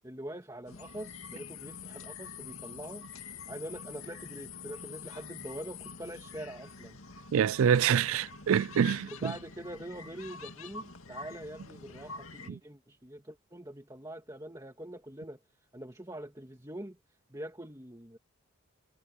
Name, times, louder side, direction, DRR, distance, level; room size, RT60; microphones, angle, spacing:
voice 1, 0.0-7.0 9.0-15.4 15.7-17.0 17.3-18.2, right 1 dB, 15° right, 2.4 m, -44 dB
sound 1, 0.7-12.5, left 5 dB, 80° left, 2.3 m, -46 dB
voice 2, 7.3-9.3, right 8 dB, 75° right, 0.3 m, -26 dB
head